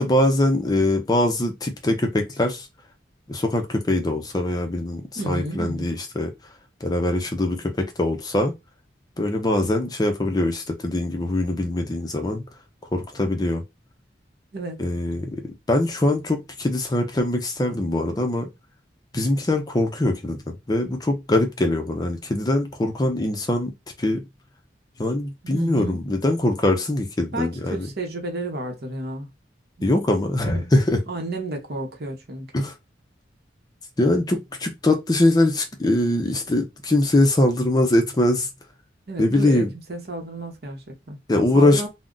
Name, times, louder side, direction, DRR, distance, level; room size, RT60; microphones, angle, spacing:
voice 1, 0.0-2.7 3.3-6.3 6.8-8.5 9.2-12.4 12.9-13.6 14.8-15.4 15.7-18.5 19.1-23.7 24.0-24.2 25.0-27.9 29.8-31.0 32.5-32.7 34.0-38.5 39.2-39.7 41.3-41.9, left 1 dB, 20° left, 0.4 m, -22 dB
voice 2, 5.2-5.9 14.5-14.8 25.4-26.0 27.3-29.3 29.8-29.9 30.4-30.7 31.1-32.7 39.1-41.2 41.5-41.9, right 1 dB, 60° right, 0.8 m, -32 dB
2.3 x 2.1 x 3.7 m
head